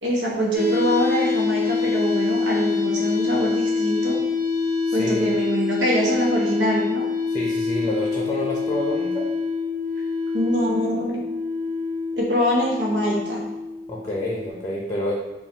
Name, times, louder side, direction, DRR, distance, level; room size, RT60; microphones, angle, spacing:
voice 1, 0.0-4.2 4.9-7.1 10.3-11.2 12.2-13.5, equal, 90° right, -3 dB, 0.9 m, -24 dB
sound 1, 0.5-14.5, left 4 dB, 50° right, 1.1 m, -25 dB
voice 2, 4.9-5.3 7.3-9.3 13.9-15.1, left 1 dB, 20° left, -3 dB, 0.6 m, -28 dB
5.5 x 2.4 x 2.8 m, 1.1 s
head